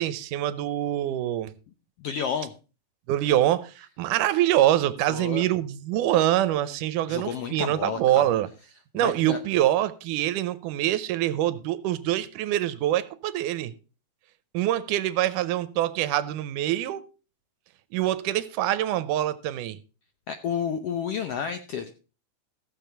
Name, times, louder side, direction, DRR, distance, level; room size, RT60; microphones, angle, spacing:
voice 1, 0.0-1.5 3.1-8.5 8.9-13.7 14.5-17.0 17.9-19.8, right 13 dB, 85° right, 2.3 m, -25 dB
voice 2, 2.0-2.5 5.1-5.4 7.1-8.2 9.0-9.4 20.3-21.9, left 7 dB, 75° left, 1.4 m, -31 dB
15.0 x 7.2 x 4.4 m
omnidirectional pair, 3.7 m